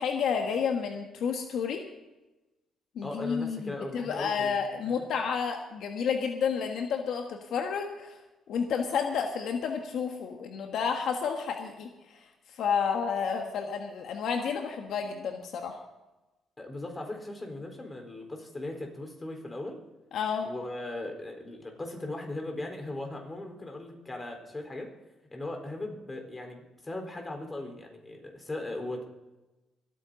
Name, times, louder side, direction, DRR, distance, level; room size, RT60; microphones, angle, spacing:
voice 1, 0.0-1.8 2.9-8.2 8.5-12.2 12.6-15.8 20.1-20.5, left 6 dB, 75° left, 4 dB, 1.5 m, -30 dB
voice 2, 3.0-4.5 4.8-4.9 16.6-19.8 20.4-24.9 25.3-29.1, left 2 dB, 20° left, 3 dB, 4.1 m, -38 dB
25.0 x 9.2 x 4.0 m, 1.1 s
cardioid pair, 90°, 0 cm